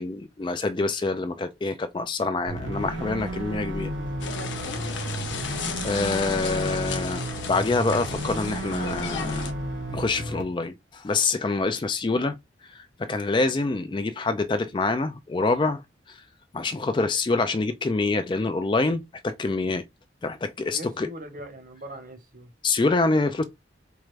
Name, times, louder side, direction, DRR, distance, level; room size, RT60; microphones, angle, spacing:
voice 1, 0.0-3.9 5.8-9.5 9.9-12.4 12.7-15.8 16.5-19.8 20.2-21.1 22.6-23.4, left 3 dB, 25° left, 0.3 m, -26 dB
sound 1, 2.5-10.4, right 1 dB, 85° right, 1.1 m, -33 dB
sound 2, 4.2-9.5, left 5 dB, 80° left, 0.7 m, -34 dB
voice 2, 20.7-22.5, equal, 45° right, 0.9 m, -41 dB
4.5 x 2.4 x 3.2 m
head